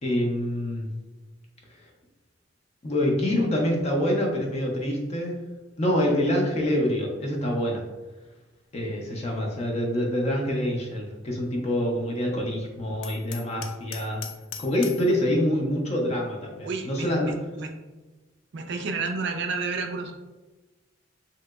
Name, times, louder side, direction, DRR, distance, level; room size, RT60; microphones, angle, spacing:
voice 1, 0.0-0.9 2.8-5.4 5.8-7.8 8.7-14.2 14.6-17.3, left 1 dB, 35° left, -1 dB, 0.5 m, -26 dB
Hammer, 13.0-15.1, left 8 dB, 90° left, 0.4 m, -40 dB
voice 2, 16.7-17.3 17.6-17.7 18.5-20.1, right 4 dB, 60° right, 4 dB, 0.4 m, -30 dB
3.0 x 2.8 x 2.3 m, 1.2 s
head